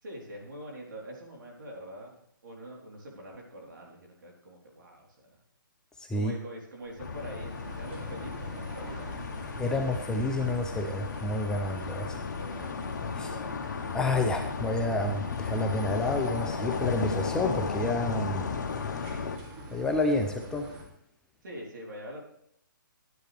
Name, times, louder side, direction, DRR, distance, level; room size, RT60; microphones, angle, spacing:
voice 1, 0.0-5.4 6.1-9.2 11.9-13.6 21.4-22.2, equal, 60° right, -1 dB, 3.8 m, -45 dB
voice 2, 6.0-6.3 9.6-12.1 13.2-13.4 13.9-18.5 19.7-20.7, left 2 dB, 5° left, 3 dB, 0.5 m, -29 dB
sound 1, 6.8-20.8, right 1 dB, 30° right, 2.6 m, -45 dB
sound 2, 7.0-19.4, left 5 dB, 55° left, 1.1 m, -35 dB
11.5 x 10.0 x 3.4 m, 0.72 s
hypercardioid pair, 150°, 11 cm